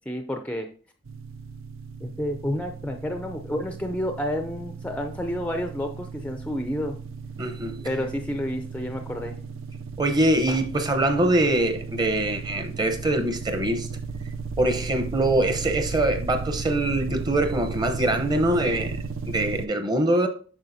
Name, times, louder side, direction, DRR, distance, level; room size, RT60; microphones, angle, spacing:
voice 1, 0.1-0.7 2.0-7.0 7.8-9.4, equal, 5° left, 0.4 m, -30 dB
sound 1, 1.1-19.7, right 4 dB, 90° right, 0.6 m, -35 dB
voice 2, 7.4-7.9 10.0-13.9 14.6-20.3, right 1 dB, 20° right, 0.8 m, -23 dB
8.9 x 6.3 x 2.7 m
head